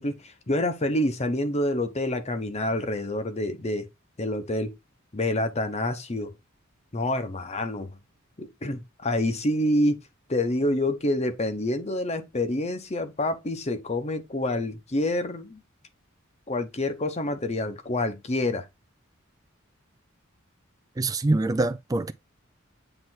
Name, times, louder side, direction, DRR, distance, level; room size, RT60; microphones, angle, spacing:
voice 1, 0.0-3.9 4.2-4.7 5.1-6.3 6.9-7.9 8.4-10.0 10.3-15.6 16.5-18.7, left 1 dB, 30° left, 0.8 m, -27 dB
voice 2, 21.0-22.1, right 2 dB, 15° right, 0.4 m, -24 dB
7.9 x 3.3 x 4.4 m
head